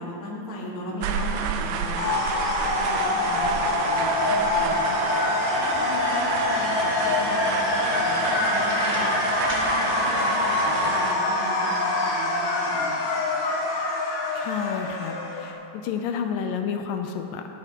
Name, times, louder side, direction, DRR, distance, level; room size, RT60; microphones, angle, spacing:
voice 1, 0.0-2.1 2.6-5.0 5.5-9.1 9.4-12.9, left 1 dB, 35° left, -4 dB, 1.4 m, -37 dB
sound 1, 1.0-11.1, right 7 dB, 80° right, 1.9 m, -30 dB
sound 2, 2.0-15.5, left 2 dB, 65° left, 2.4 m, -25 dB
sound 3, 7.8-8.4 8.7-9.7, equal, 30° right, 1.4 m, -37 dB
voice 2, 14.4-17.5, left 7 dB, 80° left, 5 dB, 2.2 m, -30 dB
14.5 x 11.5 x 2.9 m, 2.8 s
omnidirectional pair, 4.0 m